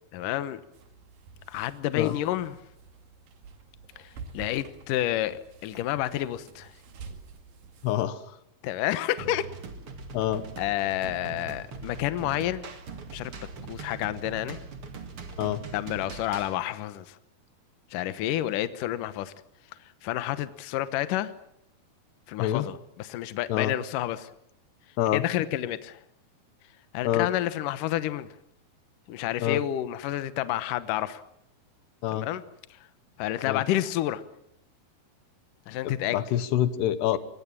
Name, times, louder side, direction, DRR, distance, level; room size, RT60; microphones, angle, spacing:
voice 1, 0.1-0.6 1.5-2.6 4.0-4.1 4.3-6.7 8.6-9.4 10.6-12.7 13.1-13.3 13.7-14.6 15.7-17.2 17.9-19.3 20.0-21.3 22.3-24.3 25.1-26.0 26.9-28.3 29.1-31.2 32.1-32.4 33.2-34.2 35.7-36.2, left 13 dB, 70° left, 2.4 m, -29 dB
sound 1, 0.7-8.0, right 5 dB, 65° right, 3.6 m, -48 dB
voice 2, 7.8-8.4 10.1-10.5 15.4-15.6 22.4-22.7 23.5-23.8 25.0-25.2 27.0-27.3 29.4-29.6 32.0-32.3 33.5-33.6 35.8-37.2, left 12 dB, 90° left, 3.3 m, -26 dB
sound 2, 9.2-16.6, right 4 dB, 40° right, 2.3 m, -41 dB
25.0 x 21.0 x 7.5 m
omnidirectional pair, 4.6 m